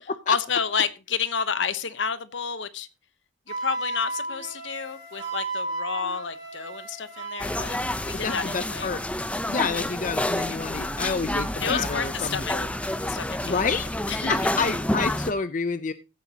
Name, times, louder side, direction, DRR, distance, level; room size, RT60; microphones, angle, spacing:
voice 1, 0.3-2.9 3.5-8.9 11.6-12.6 13.0-13.6 14.1-14.3, left 6 dB, 70° left, 14 dB, 1.0 m, -30 dB
Wind instrument woodwind instrument, 3.5-7.7, right 2 dB, 25° right, 5.4 m, -34 dB
sound 1, 7.4-15.3, left 1 dB, 5° left, 0.7 m, -29 dB
voice 2, 8.2-9.0 9.5-12.7 13.4-13.9 14.3-15.9, left 5 dB, 40° left, 13 dB, 0.6 m, -29 dB
15.0 x 9.8 x 2.9 m, 0.27 s
head